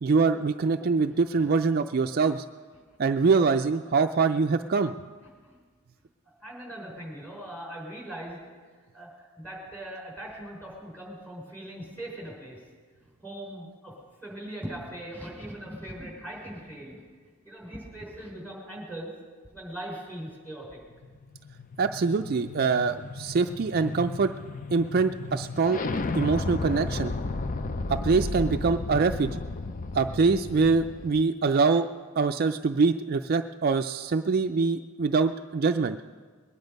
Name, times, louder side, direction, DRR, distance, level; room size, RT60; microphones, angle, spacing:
voice 1, 0.0-2.5 3.0-4.9 21.8-24.3 24.7-25.8 26.1-27.1 27.9-29.4 29.9-36.0, right 4 dB, 45° right, 7 dB, 0.4 m, -24 dB
voice 2, 6.4-8.4 8.9-12.7 13.0-13.9 14.2-17.0 17.4-19.1 19.5-20.8 23.8-23.9, right 1 dB, 10° left, -3 dB, 4.9 m, -40 dB
sound 1, 21.0-31.2, left 3 dB, 40° left, 0.5 m, -34 dB
21.5 x 9.9 x 5.3 m, 1.5 s
head